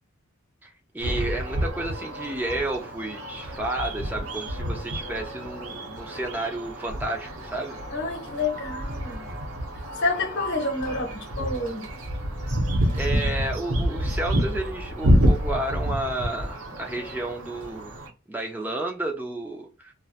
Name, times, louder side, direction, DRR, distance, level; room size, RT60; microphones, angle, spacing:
voice 1, 0.6-7.8 13.0-17.9 18.3-19.9, right 2 dB, 10° right, 0.3 m, -31 dB
sound 1, 1.0-18.1, equal, 85° right, 0.7 m, -28 dB
voice 2, 7.9-9.3 10.0-11.8, left 3 dB, 60° left, 0.8 m, -28 dB
2.3 x 2.1 x 2.7 m
head